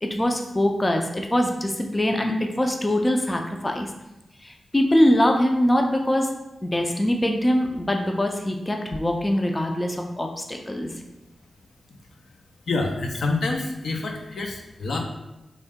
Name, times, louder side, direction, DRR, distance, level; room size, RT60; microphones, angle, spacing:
voice 1, 0.0-3.9 4.4-6.3 6.6-10.9, left 1 dB, 20° left, 3 dB, 0.3 m, -23 dB
voice 2, 12.7-15.0, left 3 dB, 75° left, 2 dB, 0.5 m, -27 dB
3.6 x 2.1 x 3.5 m, 0.97 s
wide cardioid pair, 95°, 0 cm